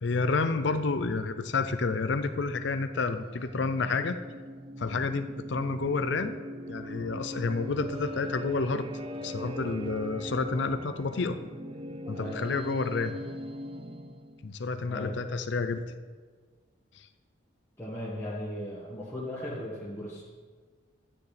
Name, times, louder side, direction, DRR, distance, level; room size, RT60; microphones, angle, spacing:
voice 1, 0.0-4.2 4.8-6.3 6.7-8.9 9.2-11.4 12.1-13.1 14.4-15.8, left 4 dB, 65° left, 10 dB, 0.5 m, -29 dB
sound 1, 3.0-14.4, equal, 30° right, 0.5 m, -40 dB
voice 2, 17.8-20.2, left 1 dB, 10° left, -8 dB, 1.5 m, -37 dB
12.0 x 9.4 x 3.4 m, 1.5 s
head